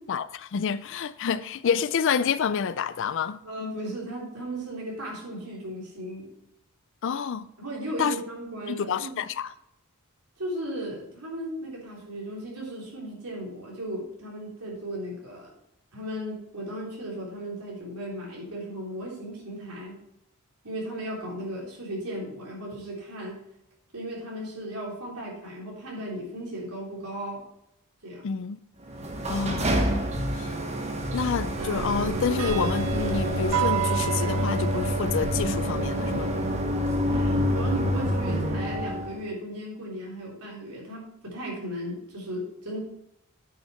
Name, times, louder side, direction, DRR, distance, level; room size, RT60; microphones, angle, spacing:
voice 1, 0.1-3.4 7.0-7.5 8.0-8.1 8.7-9.5 28.2-28.6 29.3-30.0 30.3-30.5 31.1-36.3, left 6 dB, 55° left, 0.4 m, -28 dB
voice 2, 3.4-6.3 7.6-9.2 10.4-15.5 15.9-20.0 20.6-23.4 23.9-27.4 28.0-28.3 29.1-29.3 37.1-42.8, right 1 dB, 85° right, 3.6 m, -36 dB
sound 1, 28.9-39.2, equal, 30° right, 1.2 m, -27 dB
sound 2, 31.6-36.6, right 7 dB, 70° right, 0.5 m, -31 dB
9.4 x 6.4 x 4.4 m
head